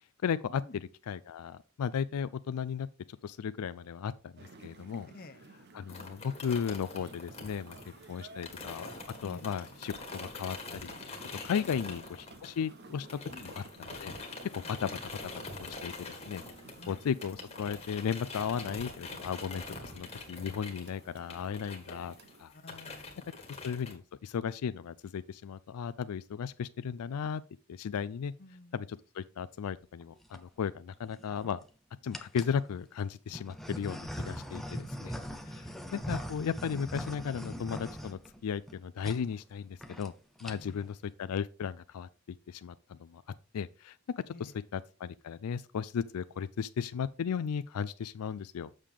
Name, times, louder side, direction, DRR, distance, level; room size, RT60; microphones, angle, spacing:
voice 1, 0.2-5.1 5.7-7.8 8.1-8.9 9.2-10.9 11.4-14.1 14.4-14.9 15.6-16.4 16.9-22.1 22.4-22.5 23.6-27.4 27.7-28.3 28.7-31.6 32.0-34.0 34.3-35.2 35.5-40.1 40.4-42.1 42.5-43.2 43.5-48.7, left 7 dB, 85° left, 0.4 m, -35 dB
sound 1, 4.4-22.5, right 3 dB, 45° right, 0.7 m, -54 dB
voice 2, 5.1-5.4 9.2-9.5 13.3-13.5 14.6-14.7 16.7-17.0 22.5-23.5 28.4-28.8 35.5-35.9 40.5-41.0 44.3-44.6, left 2 dB, 40° left, 0.8 m, -52 dB
sound 2, 5.9-12.8 13.1-23.9, left 3 dB, 25° left, 1.6 m, -45 dB
sound 3, 30.0-30.4 31.1-31.6 32.1-32.6 33.3-38.7 39.0-39.2 39.5-39.6 39.8-40.1 40.4-40.8, equal, ahead, 0.6 m, -41 dB
7.5 x 6.6 x 3.6 m
head